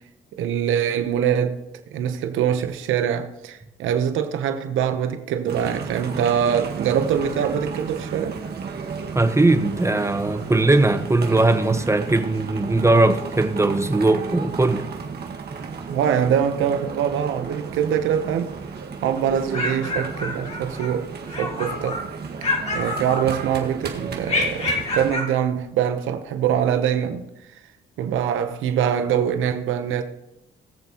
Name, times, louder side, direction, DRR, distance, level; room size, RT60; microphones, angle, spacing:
voice 1, 0.4-1.6 1.9-8.4 15.8-18.5 19.0-21.1 21.4-22.0 22.4-27.3 28.0-30.0, right 8 dB, 85° right, 1.0 m, -23 dB
sound 1, 5.5-25.1, right 5 dB, 55° right, 1.8 m, -33 dB
voice 2, 9.1-14.9, right 2 dB, 15° right, 1.1 m, -19 dB
sound 2, 19.3-20.9 21.3-22.1 22.4-23.7 24.2-25.3, left 2 dB, 35° left, 2.9 m, -28 dB
21.0 x 7.0 x 3.0 m
cardioid pair, 90°, 20 cm